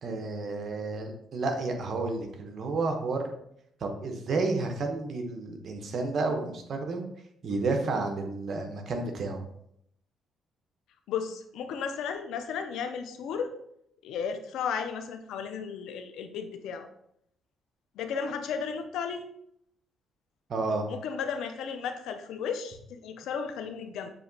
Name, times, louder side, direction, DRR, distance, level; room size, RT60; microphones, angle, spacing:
voice 1, 0.0-3.3 3.8-7.1 7.4-9.4 20.5-20.9, right 3 dB, 55° right, 4 dB, 0.9 m, -31 dB
voice 2, 11.1-13.5 14.0-16.9 18.0-19.3 20.9-24.1, left 6 dB, 85° left, 8 dB, 0.5 m, -34 dB
6.8 x 2.8 x 2.7 m, 0.73 s
cardioid pair, 90°, 0 cm